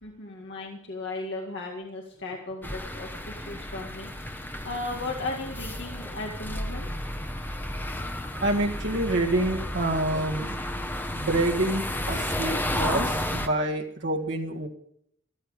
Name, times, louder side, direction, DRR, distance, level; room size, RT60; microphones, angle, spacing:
voice 1, 0.0-6.9, left 2 dB, 60° left, 0 dB, 2.0 m, -36 dB
sound 1, 2.6-13.5, left 1 dB, 10° left, 1.0 m, -32 dB
voice 2, 8.4-10.6 11.1-14.7, right 1 dB, 60° right, 1 dB, 1.8 m, -27 dB
14.5 x 13.5 x 5.1 m, 0.69 s
head